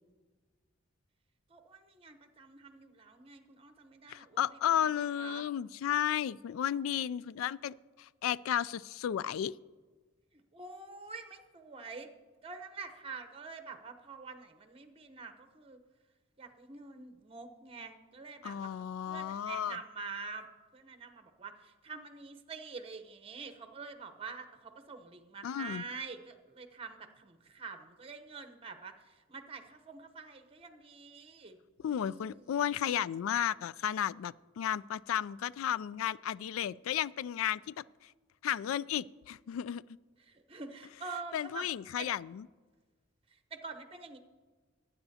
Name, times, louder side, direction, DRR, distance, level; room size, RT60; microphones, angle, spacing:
voice 1, 1.5-4.4 5.2-5.5 10.3-12.1 12.4-15.8 16.4-20.5 20.7-32.5 40.2-41.7 42.0-42.1 43.3-44.2, right 4 dB, 30° right, 7 dB, 0.9 m, -46 dB
voice 2, 4.1-9.5 18.4-19.8 25.4-25.8 31.8-37.8 38.4-39.8 41.3-42.4, left 10 dB, 90° left, 20 dB, 0.3 m, -33 dB
19.0 x 9.0 x 2.8 m, 1.4 s
head